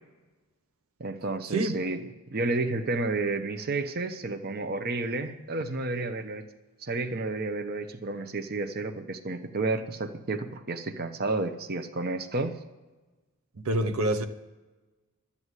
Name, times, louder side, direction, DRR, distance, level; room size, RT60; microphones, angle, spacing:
voice 1, 1.0-2.0 2.3-6.5 6.8-12.6, right 3 dB, 45° right, 9 dB, 0.7 m, -31 dB
voice 2, 13.6-14.3, right 1 dB, 85° right, 10 dB, 0.8 m, -26 dB
12.5 x 8.5 x 8.1 m, 1.2 s
head